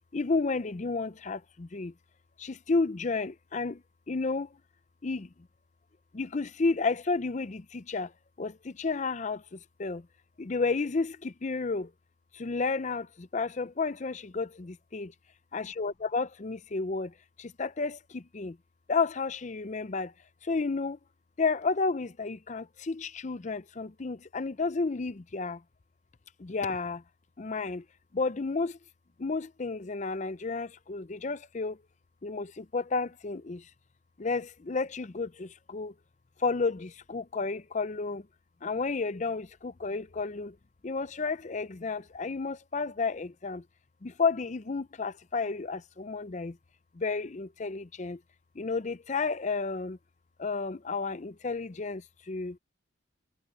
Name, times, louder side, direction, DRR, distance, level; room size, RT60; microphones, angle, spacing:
voice 1, 0.1-1.9 2.4-3.8 4.1-4.5 5.0-5.3 6.1-8.1 8.4-10.0 10.4-11.9 12.3-15.1 15.5-17.1 17.4-18.6 18.9-20.1 20.4-21.0 21.4-25.6 26.4-27.0 27.4-27.8 28.1-28.8 29.2-31.8 32.2-33.6 34.2-35.9 36.4-38.2 38.6-40.5 40.8-43.6 44.0-46.6 47.0-48.2 48.6-50.0 50.4-52.0 52.3-52.6, left 4 dB, 35° left, 0.5 m, -31 dB
head